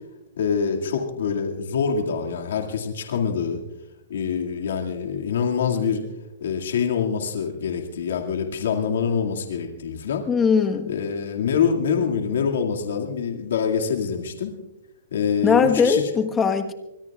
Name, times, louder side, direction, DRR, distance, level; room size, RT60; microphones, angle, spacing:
voice 1, 0.4-3.6 4.1-6.0 6.4-10.2 10.9-14.5 15.1-16.0, left 6 dB, 80° left, 2 dB, 2.1 m, -25 dB
voice 2, 10.3-10.9 15.4-16.7, left 6 dB, 15° left, 6 dB, 1.2 m, -20 dB
24.5 x 20.5 x 2.4 m, 0.96 s
hypercardioid pair, 155°, 0 cm